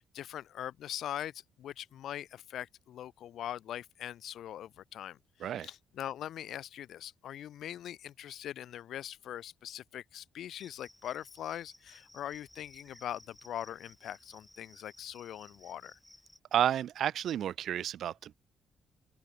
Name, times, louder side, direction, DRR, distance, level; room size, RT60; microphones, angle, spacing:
voice 1, 0.0-16.0, left 11 dB, 70° left, 0.6 m, -42 dB
Cricket, 10.6-16.4, left 1 dB, 5° left, 7.4 m, -59 dB
voice 2, 16.5-18.3, right 10 dB, 70° right, 0.7 m, -31 dB
open air
cardioid pair, 90°, 0 cm